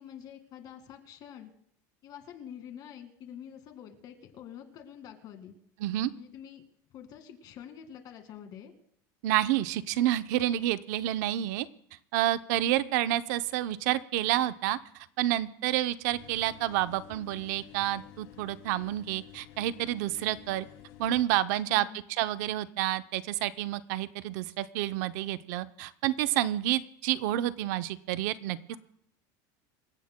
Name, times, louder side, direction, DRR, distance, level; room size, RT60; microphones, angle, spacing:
voice 1, 0.0-1.5 2.0-5.6 6.1-6.6 6.9-8.7 12.7-13.0 21.7-22.0 28.7-28.8, left 9 dB, 40° left, 7 dB, 1.9 m, -47 dB
voice 2, 5.8-6.1 9.2-11.7 12.1-20.7 21.0-28.8, right 14 dB, 75° right, 13 dB, 0.6 m, -29 dB
sound 1, 16.1-21.2, left 13 dB, 70° left, 2.6 m, -51 dB
26.0 x 15.5 x 2.2 m, 0.68 s
cardioid pair, 155°, 10 cm